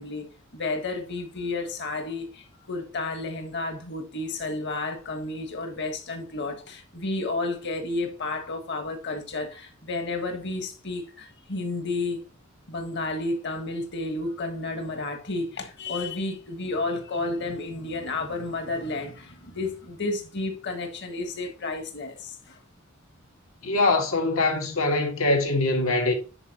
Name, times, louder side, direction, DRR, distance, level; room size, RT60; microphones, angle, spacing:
voice 1, 0.0-12.2 12.7-22.6, left 2 dB, 55° left, 1.5 m, -31 dB
voice 2, 23.6-26.1, left 2 dB, 85° left, 1.8 m, -23 dB
9.8 x 4.6 x 2.9 m
head